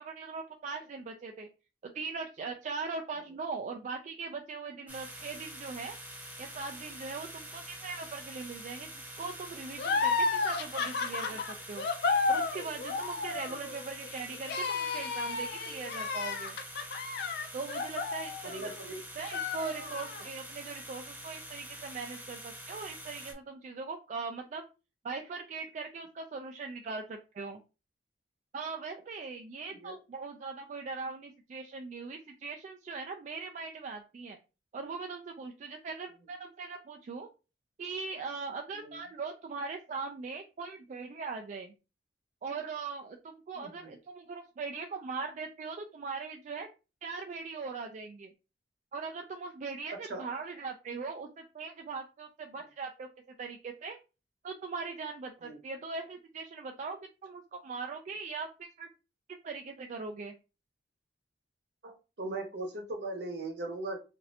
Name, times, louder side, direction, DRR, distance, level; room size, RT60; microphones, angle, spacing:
voice 1, 0.0-1.5 1.8-6.0 6.4-11.9 12.3-16.6 17.5-18.6 19.2-24.6 25.0-27.6 28.5-34.4 34.7-37.3 37.8-41.7 42.4-46.7 47.0-48.3 48.9-53.1 53.4-54.0 54.4-58.9 59.4-60.4, right 4 dB, 40° right, 4 dB, 0.3 m, -40 dB
sound 1, 4.9-23.3, right 1 dB, 10° right, 0.7 m, -46 dB
sound 2, 9.8-18.8 19.2-20.2, left 4 dB, 60° left, 0.4 m, -32 dB
voice 2, 18.4-19.0 19.6-19.9 29.8-30.0 38.7-39.0 43.5-43.9 49.9-50.3 55.4-55.6 61.8-64.0, right 2 dB, 65° right, 3 dB, 0.9 m, -39 dB
3.1 x 2.6 x 2.7 m, 0.31 s
head